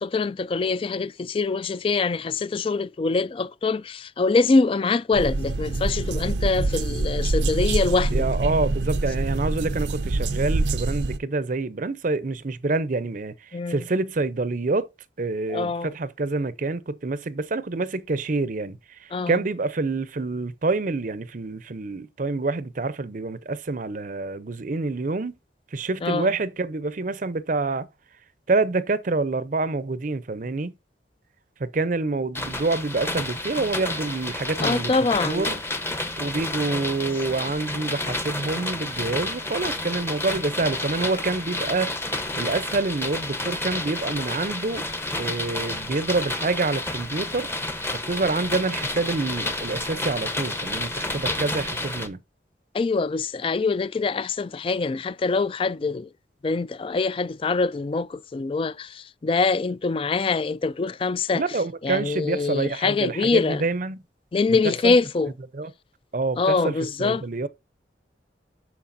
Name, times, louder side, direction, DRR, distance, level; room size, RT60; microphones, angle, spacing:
voice 1, 0.0-8.2 13.5-13.8 15.5-15.9 19.1-19.4 26.0-26.3 34.6-35.4 52.7-56.1 56.4-61.4 61.8-63.6 64.3-65.3 66.4-67.2, left 4 dB, 30° left, 0.3 m, -24 dB
sound 1, 5.1-11.2, right 2 dB, 90° right, 0.6 m, -25 dB
voice 2, 8.1-14.9 15.2-25.3 25.7-27.9 28.5-30.7 31.6-35.0 35.2-35.6 36.2-42.0 42.3-44.9 45.2-47.5 48.1-52.2 61.3-64.0 64.6-65.0 65.5-65.7 66.1-67.5, right 3 dB, 50° right, 0.6 m, -27 dB
sound 2, 32.3-52.1, left 2 dB, 15° left, 0.8 m, -30 dB
13.0 x 4.6 x 2.6 m
head